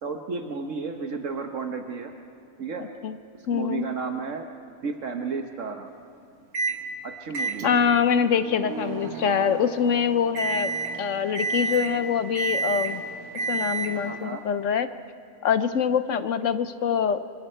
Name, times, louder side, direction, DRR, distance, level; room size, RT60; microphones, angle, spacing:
voice 1, 0.0-2.1 2.6-2.9 3.5-4.5 4.8-5.9 7.0-7.8 13.9-14.4, right 4 dB, 60° right, 4 dB, 1.4 m, -32 dB
voice 2, 3.5-3.8 7.6-10.7 11.0-13.0 13.5-14.9 15.4-17.2, left 7 dB, 65° left, 12 dB, 1.0 m, -24 dB
Microwave oven, 6.5-6.8 7.3-14.2, right 4 dB, 85° right, 1.9 m, -31 dB
27.0 x 24.5 x 4.5 m, 2.5 s
omnidirectional pair, 1.5 m